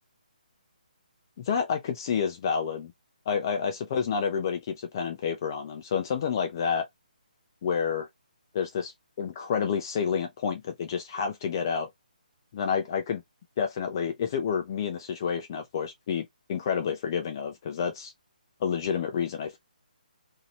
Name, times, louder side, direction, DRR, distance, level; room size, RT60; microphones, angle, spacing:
voice 1, 1.4-2.9 3.3-6.9 7.6-8.1 8.5-8.9 9.2-11.9 12.5-13.2 13.6-18.1 18.6-19.6, left 7 dB, 30° left, 0.4 m, -29 dB
2.7 x 2.7 x 2.9 m
hypercardioid pair, 165°, 5 cm